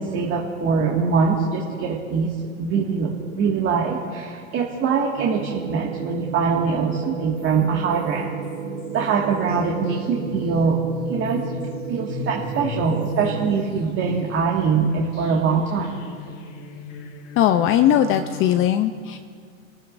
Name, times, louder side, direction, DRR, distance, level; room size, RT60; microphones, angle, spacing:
voice 1, 0.0-8.5 8.9-10.8 11.1-11.4 11.9-16.0, right 5 dB, 35° right, -2 dB, 1.9 m, -23 dB
sound 1, 5.2-13.6, right 7 dB, 65° right, 1.3 m, -33 dB
sound 2, 7.4-18.7, left 4 dB, 85° left, 2.9 m, -36 dB
voice 2, 17.4-19.2, left 10 dB, 35° left, 9 dB, 0.6 m, -19 dB
27.0 x 14.0 x 2.6 m, 2.1 s
hypercardioid pair, 115°, 37 cm